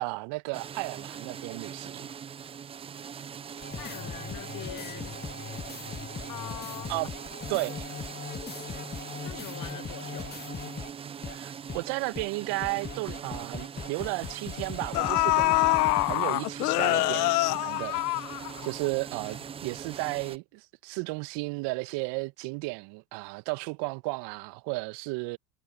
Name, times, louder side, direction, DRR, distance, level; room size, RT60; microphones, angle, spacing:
voice 1, 0.0-2.1 6.9-7.1 7.5-7.9 11.2-18.0 18.6-25.4, right 26 dB, 55° right, 1.6 m, -34 dB
sound 1, 0.5-20.4, right 7 dB, 15° right, 0.4 m, -42 dB
sound 2, 3.6-10.9 11.2-11.4 11.7-11.8 12.1-12.3 12.6-16.1, left 6 dB, 20° left, 1.8 m, -39 dB
voice 2, 3.8-5.2 6.3-6.9 9.2-10.5, left 11 dB, 45° left, 6.5 m, -43 dB
sound 3, 12.8-12.9 13.2-13.4 14.4-14.5 14.9-18.9 19.2-19.3, left 21 dB, 70° left, 0.9 m, -25 dB
hypercardioid pair, 80°, 49 cm